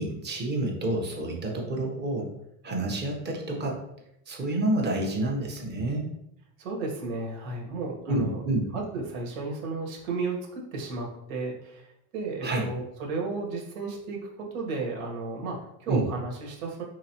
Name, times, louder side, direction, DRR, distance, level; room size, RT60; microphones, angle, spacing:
voice 1, 0.0-2.3 2.6-3.8 4.3-6.1 8.1-8.7 12.4-12.6 15.9-16.0, right 2 dB, 25° right, 0 dB, 0.9 m, -28 dB
voice 2, 6.6-8.4 8.7-16.8, right 3 dB, 70° right, -1 dB, 1.5 m, -33 dB
4.8 x 3.4 x 2.9 m, 0.80 s
supercardioid pair, 140°, 43 cm